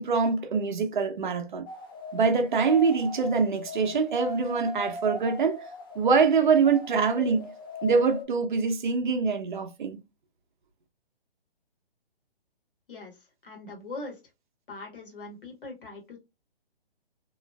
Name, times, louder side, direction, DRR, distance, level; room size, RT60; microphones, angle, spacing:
voice 1, 0.0-1.7 2.1-5.6 6.0-7.4 7.8-10.0, right 5 dB, 50° right, 0.6 m, -24 dB
sound 1, 1.7-8.2, left 2 dB, 25° left, 0.4 m, -39 dB
voice 2, 13.4-14.2 14.7-16.2, left 2 dB, 60° left, 1.5 m, -41 dB
3.0 x 2.4 x 2.3 m
figure-of-eight pair, 140°, 31 cm